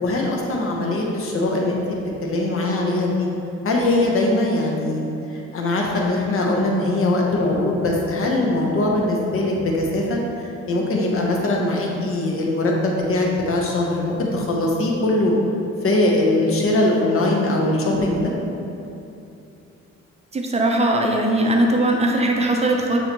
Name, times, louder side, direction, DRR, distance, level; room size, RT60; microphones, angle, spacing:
voice 1, 0.0-1.8 2.2-3.3 3.6-5.1 5.5-15.3 15.8-18.3, left 2 dB, 45° left, -1 dB, 0.8 m, -21 dB
voice 2, 20.3-23.0, right 1 dB, 20° right, 1 dB, 0.5 m, -19 dB
6.3 x 2.7 x 2.9 m, 2.7 s
cardioid pair, 90°, 30 cm